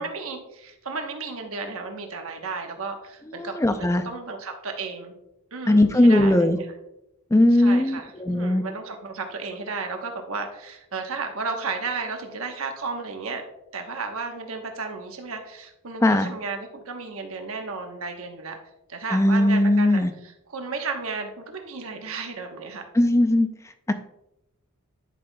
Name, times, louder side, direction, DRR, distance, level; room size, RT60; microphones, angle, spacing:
voice 1, 0.0-5.1 5.5-6.7 7.5-13.4 13.7-18.6 18.9-22.8, right 4 dB, 70° right, 4 dB, 1.1 m, -33 dB
voice 2, 3.4-4.0 5.7-6.6 7.3-8.6 16.0-16.3 19.1-20.1 23.0-23.5 23.9-24.0, left 1 dB, 15° left, 9 dB, 0.4 m, -19 dB
10.5 x 5.6 x 2.2 m, 0.87 s
head